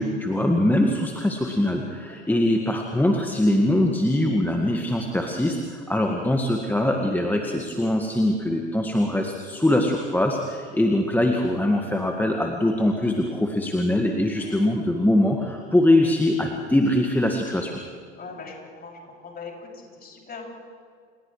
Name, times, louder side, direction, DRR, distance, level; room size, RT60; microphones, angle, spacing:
voice 1, 0.0-17.7, left 1 dB, 5° left, 1 dB, 1.9 m, -22 dB
voice 2, 2.1-2.4 14.4-14.6 18.2-20.4, left 4 dB, 25° left, -1 dB, 6.9 m, -41 dB
30.0 x 29.0 x 3.3 m, 2.1 s
figure-of-eight pair, 80°, 35 cm